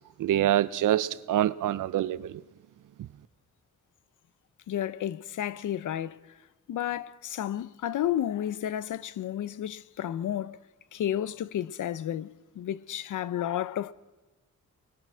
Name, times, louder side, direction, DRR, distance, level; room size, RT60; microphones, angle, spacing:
voice 1, 0.2-2.4, right 12 dB, 90° right, 0.7 m, -26 dB
voice 2, 4.7-6.2 6.7-10.6 10.9-12.3 12.6-13.9, left 11 dB, 80° left, 0.8 m, -31 dB
28.5 x 21.0 x 6.2 m
cardioid pair, 100°, 30 cm